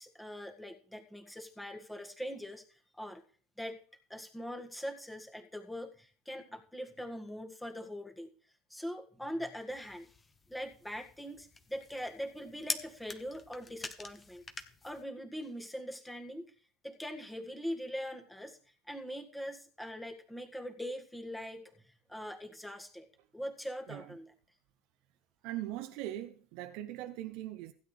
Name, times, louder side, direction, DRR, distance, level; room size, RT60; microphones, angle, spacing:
voice 1, 0.0-2.6 3.0-3.2 3.6-3.8 4.1-8.3 8.7-10.1 10.5-14.4 14.8-16.5 16.8-18.6 18.9-21.8 22.1-23.1 23.3-24.3, equal, 5° left, 1.7 m, -42 dB
sound 1, 9.7-15.0, left 3 dB, 20° left, 1.2 m, -45 dB
voice 2, 25.4-27.7, right 14 dB, 65° right, 0.6 m, -40 dB
16.0 x 8.8 x 3.3 m
hypercardioid pair, 80°, 0 cm